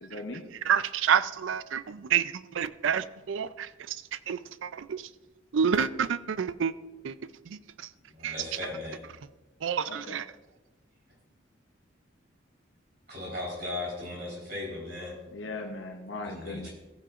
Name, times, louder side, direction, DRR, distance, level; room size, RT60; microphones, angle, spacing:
voice 1, 0.0-0.4 9.9-10.2 15.3-16.7, left 2 dB, 65° left, 0.9 m, -38 dB
voice 2, 0.7-5.1 5.5-6.7 7.0-7.2 7.5-7.9 8.2-8.4 9.6-10.3, right 7 dB, 75° right, 0.4 m, -29 dB
voice 3, 8.1-9.0 13.1-15.1 16.2-16.7, left 2 dB, 50° right, 3.9 m, -37 dB
16.0 x 9.9 x 2.5 m
head